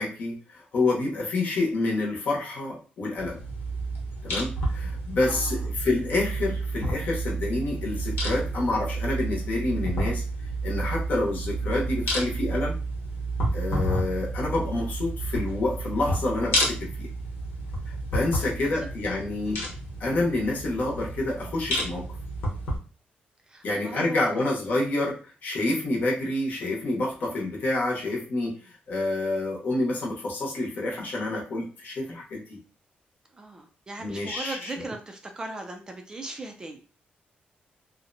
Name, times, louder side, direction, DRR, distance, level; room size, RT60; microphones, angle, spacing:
voice 1, 0.0-3.4 4.2-10.2 10.6-12.8 13.5-17.1 17.9-19.7 20.0-22.1 23.6-32.6 34.0-34.7, left 2 dB, 55° left, -2 dB, 0.9 m, -28 dB
sound 1, 3.2-22.8, right 1 dB, 90° left, 1.0 m, -30 dB
voice 2, 5.2-5.6 8.4-8.5 18.2-18.9 19.5-19.7 23.5-24.5 33.3-36.8, right 2 dB, 20° right, 4 dB, 0.3 m, -39 dB
2.7 x 2.1 x 2.5 m, 0.37 s
wide cardioid pair, 150°, 3 cm